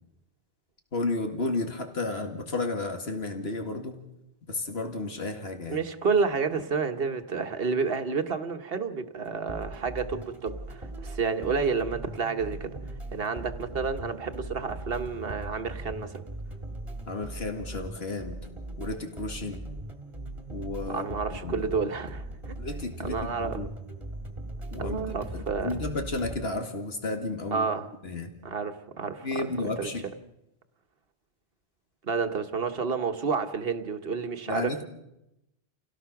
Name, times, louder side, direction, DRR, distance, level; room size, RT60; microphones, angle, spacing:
voice 1, 0.9-4.0 4.5-5.8 17.1-18.4 18.8-19.7 20.5-21.7 22.6-23.7 24.7-25.0 25.3-27.7 28.0-28.3 29.2-30.0 34.5-34.8, left 2 dB, 80° left, 2.4 m, -32 dB
voice 2, 5.7-12.8 13.1-16.2 20.9-22.6 23.0-23.6 24.8-25.7 27.5-27.9 28.4-29.9 32.0-34.8, right 5 dB, 65° right, 1.5 m, -30 dB
sound 1, 9.2-26.5, right 1 dB, 30° right, 1.9 m, -39 dB
29.0 x 17.0 x 6.0 m
omnidirectional pair, 1.0 m